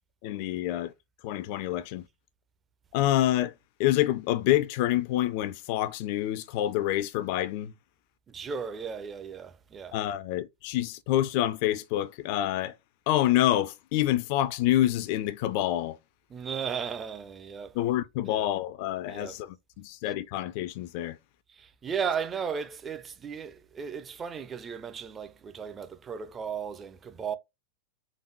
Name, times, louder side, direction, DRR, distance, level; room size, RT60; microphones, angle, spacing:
voice 1, 0.2-0.9 1.2-2.1 2.9-3.5 3.8-7.7 9.9-12.7 13.1-16.0 17.7-21.2, left 13 dB, 45° left, 0.4 m, -27 dB
voice 2, 8.3-10.0 16.3-17.8 18.2-18.5 19.1-19.4 21.5-27.4, right 6 dB, 20° right, 0.6 m, -35 dB
4.0 x 3.5 x 3.3 m
figure-of-eight pair, 90°, 0 cm